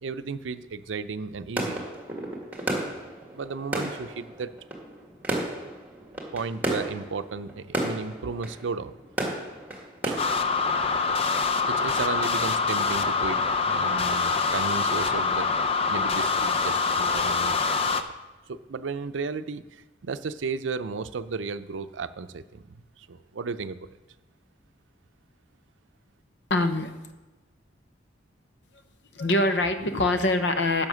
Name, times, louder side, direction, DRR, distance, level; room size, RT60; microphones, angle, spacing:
voice 1, 0.0-1.8 3.3-4.5 6.3-8.9 10.0-10.3 11.7-15.5 15.9-17.6 17.8-18.1 18.5-23.8, right 4 dB, 85° right, 12 dB, 0.5 m, -34 dB
sound 1, 1.6-10.2, right 1 dB, 10° right, 1.9 m, -33 dB
sound 2, 10.2-18.0, left 4 dB, 30° left, 0.6 m, -25 dB
voice 2, 26.5-26.9 29.1-30.9, left 2 dB, 65° left, 8 dB, 0.9 m, -24 dB
10.5 x 7.0 x 6.3 m, 1.1 s
head